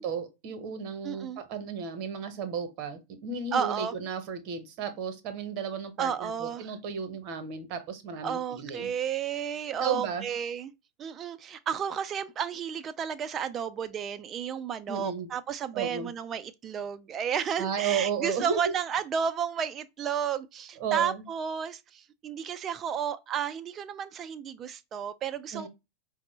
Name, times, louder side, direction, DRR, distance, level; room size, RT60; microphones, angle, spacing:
voice 1, 0.0-8.9 9.8-10.3 14.9-15.3 15.7-16.1 17.6-18.6 20.8-21.2 25.5-25.7, right 6 dB, 45° right, 0.8 m, -33 dB
voice 2, 1.0-1.4 3.5-3.9 6.0-6.7 8.2-10.7 11.0-25.7, right 8 dB, 25° right, 0.3 m, -32 dB
4.9 x 2.0 x 3.1 m
figure-of-eight pair, 90°, 0 cm